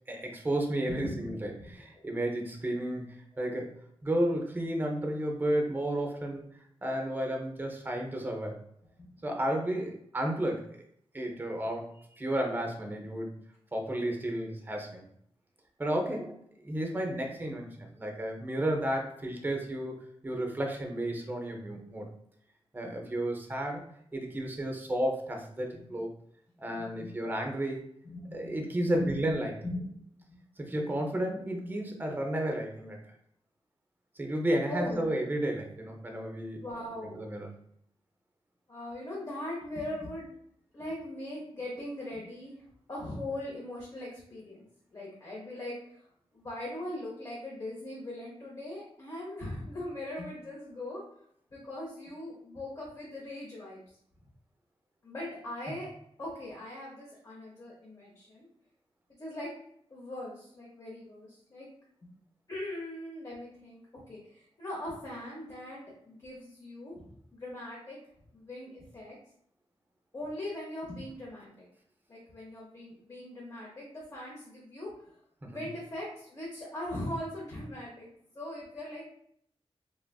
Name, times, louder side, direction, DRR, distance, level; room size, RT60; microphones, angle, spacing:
voice 1, 0.1-3.7 4.0-6.4 6.8-8.6 9.2-10.8 11.1-11.9 12.2-13.3 13.7-15.0 15.8-16.3 16.6-22.1 22.7-23.8 24.1-26.1 26.6-27.8 28.3-29.5 30.6-33.0 34.2-36.6 37.1-37.5 75.4-75.6, right 1 dB, 20° right, 2 dB, 0.5 m, -32 dB
voice 2, 0.9-1.9 9.0-9.1 17.2-17.4 25.7-26.0 26.8-27.1 28.0-29.3 29.6-30.0 34.7-35.1 36.6-37.3 38.7-40.3 40.7-42.6 42.9-46.0 46.3-51.0 51.5-53.8 55.0-55.9 56.2-58.5 59.2-59.5 59.9-61.7 62.0-62.1 62.5-65.8 66.1-68.0 68.3-69.2 70.1-71.6 72.1-75.1 75.5-78.1 78.3-79.1, left 1 dB, 35° left, -5 dB, 0.7 m, -40 dB
3.2 x 2.4 x 2.2 m, 0.69 s
wide cardioid pair, 135°, 10 cm